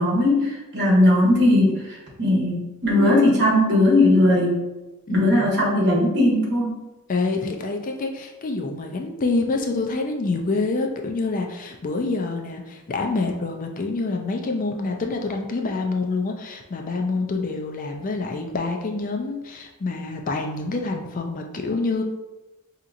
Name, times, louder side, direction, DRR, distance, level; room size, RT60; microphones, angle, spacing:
voice 1, 0.0-4.6 5.1-6.8, left 1 dB, 55° right, -3 dB, 1.2 m, -18 dB
voice 2, 5.1-5.5 7.1-22.0, left 3 dB, 40° left, 3 dB, 0.4 m, -27 dB
4.7 x 2.8 x 2.5 m, 1.0 s
head